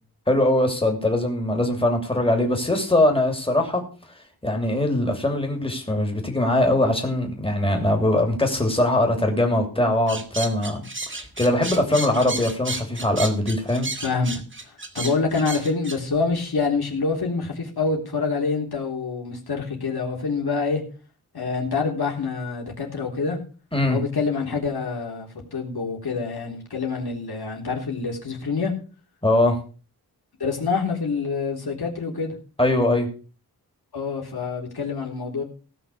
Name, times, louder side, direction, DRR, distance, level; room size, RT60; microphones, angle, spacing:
voice 1, 0.3-3.8 4.1-13.9 23.7-24.0 29.2-29.6 32.6-33.1, left 1 dB, 15° left, 3 dB, 2.9 m, -22 dB
sound 1, 10.1-16.0, right 2 dB, 30° right, 1.8 m, -32 dB
voice 2, 14.0-14.4 14.9-20.8 21.3-23.4 23.9-28.7 30.4-32.3 33.9-35.4, left 4 dB, 75° left, 0 dB, 3.5 m, -26 dB
17.0 x 6.0 x 6.6 m, 0.38 s
wide cardioid pair, 90°, 38 cm